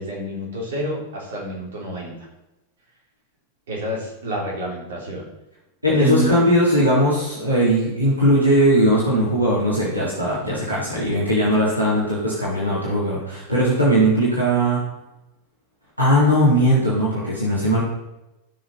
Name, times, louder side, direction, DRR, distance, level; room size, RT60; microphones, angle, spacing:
voice 1, 0.0-2.1 3.7-5.2 5.9-6.3, right 1 dB, 60° right, -3 dB, 4.5 m, -28 dB
voice 2, 5.8-14.8 16.0-17.8, equal, 85° right, -7 dB, 3.4 m, -19 dB
16.0 x 6.5 x 4.3 m, 0.95 s
figure-of-eight pair, 90°, 0 cm